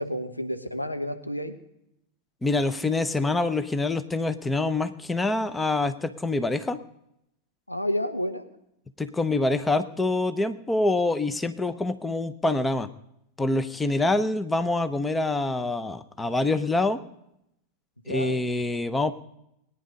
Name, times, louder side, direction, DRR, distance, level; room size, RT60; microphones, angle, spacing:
voice 1, 0.0-1.5 7.7-8.4 18.1-18.4, equal, 85° left, 7 dB, 1.3 m, -30 dB
voice 2, 2.4-6.8 9.0-12.9 13.4-17.0 18.1-19.1, left 2 dB, 10° left, 12 dB, 0.9 m, -25 dB
21.0 x 9.6 x 5.2 m, 0.83 s
figure-of-eight pair, 90°, 0 cm